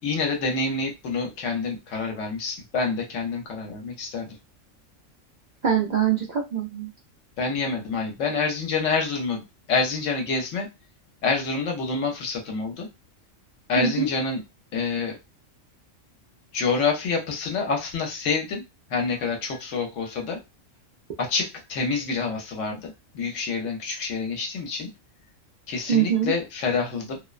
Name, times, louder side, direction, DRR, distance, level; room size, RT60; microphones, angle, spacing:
voice 1, 0.0-4.4 7.4-9.4 9.7-10.7 11.2-12.9 13.7-14.4 14.7-15.2 16.5-18.6 18.9-20.4 21.2-24.9 25.7-27.2, left 4 dB, 75° left, 2 dB, 1.0 m, -27 dB
voice 2, 5.6-6.9 13.8-14.1 25.9-26.3, right 7 dB, 65° right, -3 dB, 0.4 m, -23 dB
2.5 x 2.1 x 2.4 m, 0.24 s
omnidirectional pair, 1.3 m